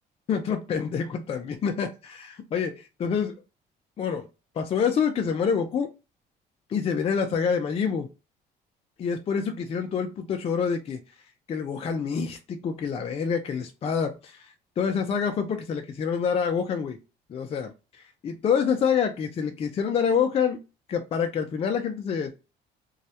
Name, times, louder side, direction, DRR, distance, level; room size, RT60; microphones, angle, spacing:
voice 1, 0.3-3.4 4.0-4.3 4.6-5.9 6.7-8.1 9.0-11.0 11.5-17.0 17.3-17.7 18.2-20.6 20.9-22.3, left 6 dB, 35° left, 5 dB, 0.4 m, -27 dB
2.3 x 2.0 x 2.7 m, 0.29 s
cardioid pair, 110°, 17 cm